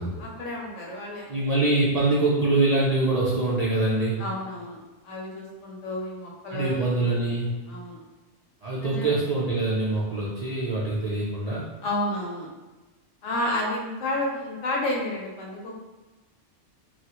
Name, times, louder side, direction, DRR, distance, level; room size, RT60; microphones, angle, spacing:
voice 1, 0.2-1.6 4.2-6.9 7.7-8.0 8.8-9.1 11.8-12.5 13.2-15.8, left 1 dB, 85° left, -2 dB, 1.0 m, -31 dB
voice 2, 1.3-4.2 6.5-7.5 8.6-11.7, right 2 dB, 55° right, -7 dB, 0.4 m, -24 dB
3.0 x 2.4 x 2.9 m, 1.2 s
omnidirectional pair, 1.2 m